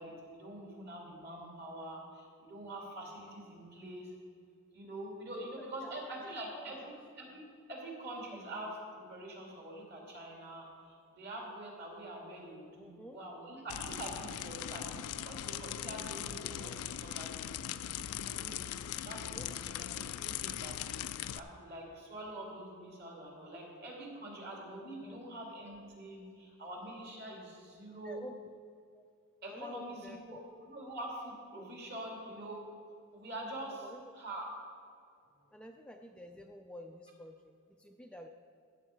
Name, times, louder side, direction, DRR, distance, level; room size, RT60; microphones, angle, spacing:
voice 1, 0.0-4.1 4.7-7.4 7.7-10.7 11.2-17.8 18.2-20.8 21.3-28.2 29.4-30.4 30.7-32.6 33.1-33.8 34.1-34.5, right 1 dB, 50° right, -2 dB, 2.6 m, -45 dB
voice 2, 5.3-7.0 12.8-13.2 19.2-19.5 25.0-25.2 28.0-28.3 28.9-29.0 29.5-30.4 31.6-31.7 33.7-34.1 35.5-38.3, left 1 dB, 5° left, 3 dB, 0.3 m, -50 dB
sound 1, 13.7-21.4, left 11 dB, 80° left, 0.4 m, -40 dB
15.0 x 7.2 x 4.5 m, 2.4 s
head